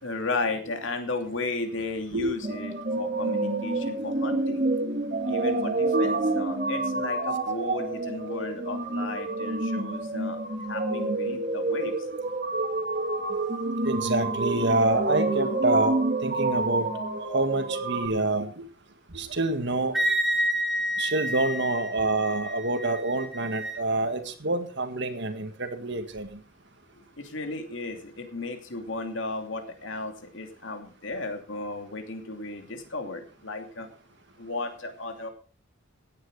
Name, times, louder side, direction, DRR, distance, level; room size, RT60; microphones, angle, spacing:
voice 1, 0.0-4.6 5.3-10.4 10.7-11.9 26.9-33.9 34.4-35.3, left 3 dB, 60° left, 5 dB, 2.7 m, -34 dB
sound 1, 2.4-18.1, right 2 dB, 40° right, 2.8 m, -28 dB
voice 2, 13.8-16.0 16.2-16.9 17.3-18.6 19.1-20.0 21.0-26.4, right 2 dB, 55° right, 8 dB, 1.8 m, -27 dB
Wind instrument woodwind instrument, 19.9-23.8, equal, ahead, 1.7 m, -29 dB
16.5 x 9.7 x 4.8 m, 0.40 s
head